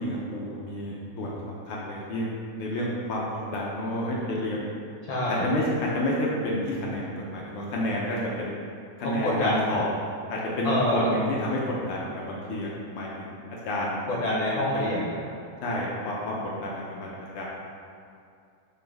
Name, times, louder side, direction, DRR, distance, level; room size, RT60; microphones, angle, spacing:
voice 1, 0.0-2.3 2.6-4.7 5.3-8.5 9.0-9.9 10.3-13.4 13.7-14.0 15.6-17.1 17.3-17.4, left 1 dB, 80° left, -4 dB, 1.2 m, -30 dB
voice 2, 5.1-5.4 9.0-9.6 10.6-11.1 14.1-15.1, left 1 dB, 65° left, -5 dB, 1.6 m, -26 dB
5.8 x 4.2 x 5.9 m, 2.4 s
omnidirectional pair, 3.7 m